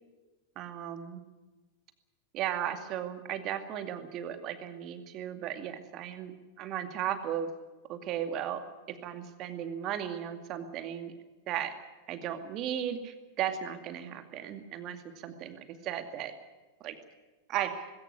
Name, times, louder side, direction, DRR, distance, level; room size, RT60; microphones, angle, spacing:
voice 1, 0.6-1.2 2.3-6.3 6.6-7.5 7.9-8.6 8.9-11.1 11.5-11.7 12.1-16.3 16.8-16.9 17.5-17.9, right 10 dB, 35° right, 7 dB, 2.2 m, -35 dB
19.5 x 17.5 x 9.8 m, 1.2 s
figure-of-eight pair, 90°, 0 cm